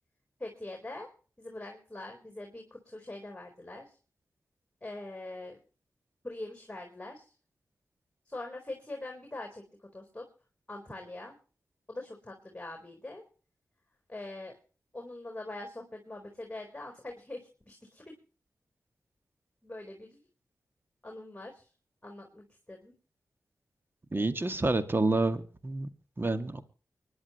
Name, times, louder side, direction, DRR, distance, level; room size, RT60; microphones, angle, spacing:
voice 1, 0.4-1.1 1.4-4.0 4.8-5.6 6.2-7.3 8.3-9.6 9.9-10.3 10.7-11.4 11.9-13.2 14.1-14.6 14.9-18.1 19.6-20.2 21.0-21.7 22.0-22.9, left 2 dB, 20° left, 3 dB, 4.6 m, -43 dB
voice 2, 24.1-25.9 26.2-26.6, right 2 dB, 35° right, 9 dB, 2.1 m, -28 dB
25.0 x 11.0 x 3.2 m, 0.38 s
cardioid pair, 40°, 6 cm